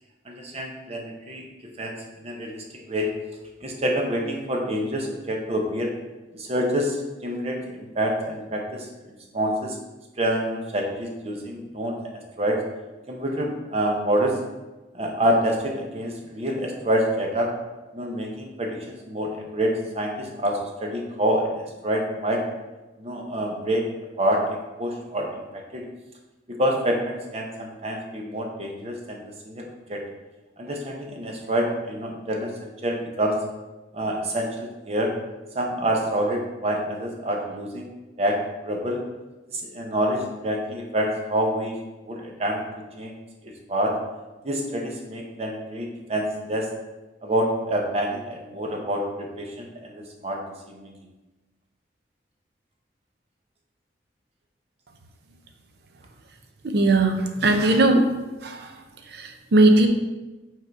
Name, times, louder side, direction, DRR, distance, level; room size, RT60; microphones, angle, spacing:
voice 1, 0.3-1.4 1.8-1.9 2.2-3.1 3.6-5.9 6.3-7.0 7.2-8.9 9.3-9.8 10.2-12.0 12.4-12.6 13.1-14.4 14.9-17.5 17.9-22.4 23.0-23.8 24.2-24.4 24.8-25.8 26.5-29.2 29.5-30.0 30.6-32.5 32.8-33.4 33.9-35.1 35.5-37.8 38.2-39.0 39.5-41.7 42.0-42.6 43.0-43.1 43.4-43.9 44.4-46.7 47.2-50.4 50.7-50.9, equal, 35° right, 1 dB, 0.9 m, -27 dB
voice 2, 56.6-58.1 58.4-58.7 59.1-59.9, right 2 dB, 60° right, 5 dB, 0.6 m, -19 dB
5.4 x 3.8 x 4.6 m, 1.1 s
head